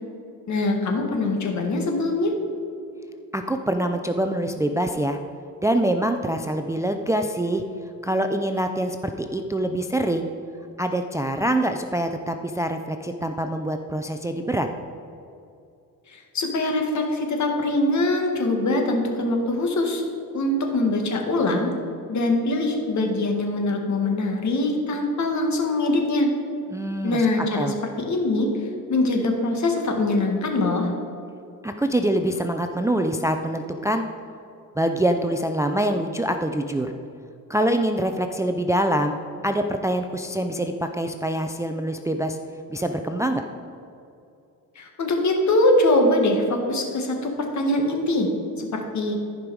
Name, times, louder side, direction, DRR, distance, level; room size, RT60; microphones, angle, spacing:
voice 1, 0.5-2.3 16.1-20.0 20.3-21.7 22.1-26.3 27.0-28.5 28.9-30.9 44.8-48.3 48.6-49.2, left 2 dB, 55° left, 2 dB, 1.7 m, -23 dB
voice 2, 3.3-5.2 5.6-7.6 8.0-10.3 10.8-14.7 26.7-27.2 27.6-27.8 31.6-34.0 34.8-36.9 37.5-39.2 39.4-42.4 42.7-43.4, right 1 dB, 10° right, 5 dB, 0.4 m, -25 dB
14.5 x 5.3 x 4.7 m, 2.7 s
cardioid pair, 95°, 34 cm